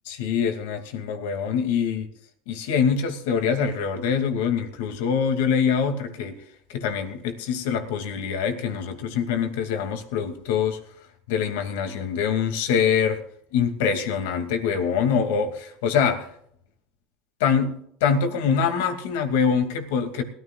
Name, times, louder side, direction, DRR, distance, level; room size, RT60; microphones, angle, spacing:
voice 1, 0.1-2.1 2.5-6.4 6.7-10.8 11.3-13.2 13.5-16.3 17.4-20.2, left 7 dB, 85° left, 2.6 m, -24 dB
20.5 x 14.5 x 2.5 m
supercardioid pair, 110°, 0 cm